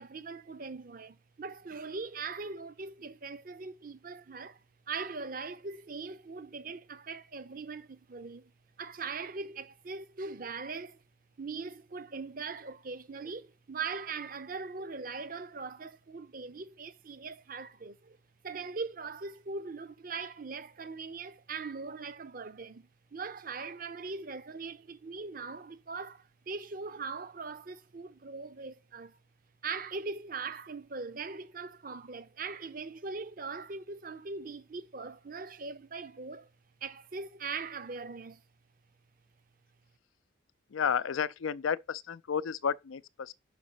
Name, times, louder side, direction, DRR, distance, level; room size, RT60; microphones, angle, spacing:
voice 1, 0.0-4.6 4.9-8.5 8.8-11.0 11.4-18.2 18.4-29.2 29.6-36.5 36.8-38.4, right 4 dB, 45° right, 0.7 m, -40 dB
voice 2, 40.7-43.3, left 7 dB, 90° left, 0.5 m, -32 dB
5.9 x 5.1 x 5.6 m
head